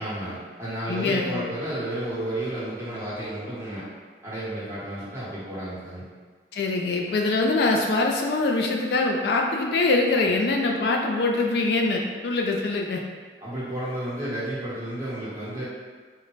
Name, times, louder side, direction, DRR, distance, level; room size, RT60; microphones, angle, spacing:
voice 1, 0.0-3.8 4.2-6.0 13.4-15.6, right 1 dB, 15° right, -10 dB, 1.0 m, -32 dB
voice 2, 0.9-1.5 6.5-13.0, left 3 dB, 65° left, 2 dB, 0.3 m, -23 dB
3.8 x 2.1 x 3.1 m, 1.5 s
head